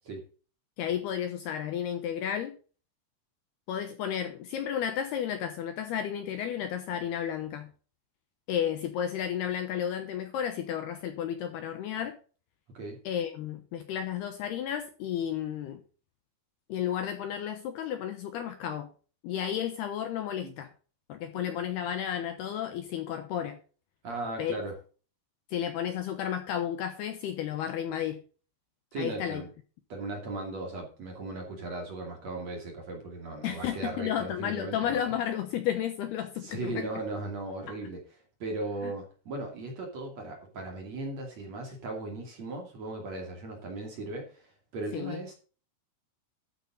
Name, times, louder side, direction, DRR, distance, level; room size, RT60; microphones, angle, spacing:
voice 1, 0.8-2.6 3.7-7.7 8.5-12.2 13.0-15.8 16.7-18.9 19.2-20.7 21.1-23.6 24.4-24.6 25.5-28.2 29.0-29.4 33.4-36.8 37.7-37.8 38.8-38.9 44.9-45.2, left 9 dB, 75° left, 9 dB, 2.6 m, -32 dB
voice 2, 24.0-24.8 28.9-29.5 29.9-35.0 36.4-38.0 38.4-45.3, right 2 dB, 40° right, 2 dB, 3.0 m, -37 dB
13.0 x 8.3 x 3.9 m, 0.38 s
omnidirectional pair, 5.6 m